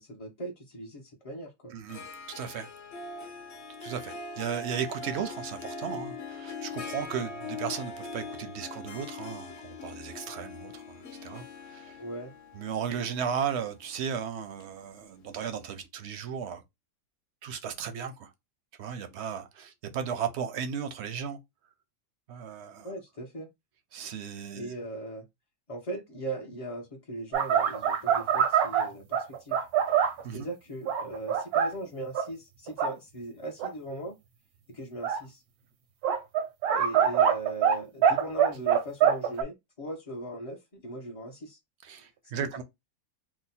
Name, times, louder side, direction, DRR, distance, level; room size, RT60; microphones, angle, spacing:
voice 1, 0.0-1.8 12.0-12.3 22.8-23.5 24.5-25.3 25.7-29.6 30.3-34.1 34.7-35.4 36.7-41.6 42.3-42.5, right 2 dB, 45° left, 0.4 m, -39 dB
voice 2, 1.7-2.7 3.8-12.0 12.5-16.6 17.4-18.3 18.8-21.4 22.3-22.9 23.9-24.7 30.2-30.5 41.8-42.6, right 7 dB, 65° right, 0.7 m, -35 dB
Harp, 1.9-15.4, left 3 dB, 60° left, 0.8 m, -42 dB
sound 1, 27.3-30.2 30.9-31.7 32.2-32.3 32.7-32.9 33.6-33.7 35.0-35.2 36.0-37.8 38.0-39.4, right 8 dB, 85° right, 1.1 m, -24 dB
2.9 x 2.1 x 4.1 m
omnidirectional pair, 1.5 m